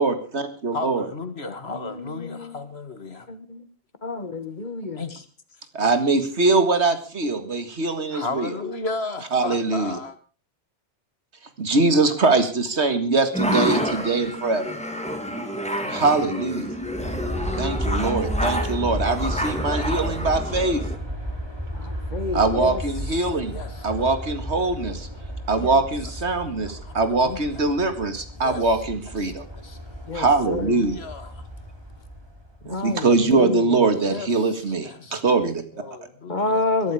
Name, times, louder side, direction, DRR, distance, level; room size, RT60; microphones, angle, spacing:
voice 1, 0.0-1.1 5.7-8.5 9.3-10.0 11.6-14.6 15.9-16.8 17.6-20.8 22.3-23.6 23.8-25.1 25.5-29.5 30.1-31.1 32.7-35.6, right 3 dB, 70° right, 2.2 m, -22 dB
voice 2, 0.7-3.3 5.0-5.3 8.1-10.1 23.5-23.7 26.6-26.9 27.5-27.6 28.4-28.6 29.2-29.3 29.6-29.8 30.1-30.5 30.8-31.5 32.7-32.8 34.1-34.3 34.8-35.2 35.8-36.9, left 3 dB, 60° left, 2.0 m, -34 dB
voice 3, 1.7-2.6 3.3-3.6 4.0-5.0 15.8-16.0 21.7-22.8 30.1-30.2 30.5-30.6 32.6-33.6 36.3-36.9, left 3 dB, 40° left, 1.6 m, -28 dB
sound 1, 13.3-21.0, equal, 5° left, 2.4 m, -29 dB
Aircraft, 16.7-32.7, equal, 20° right, 3.4 m, -33 dB
22.0 x 12.0 x 4.8 m
omnidirectional pair, 1.2 m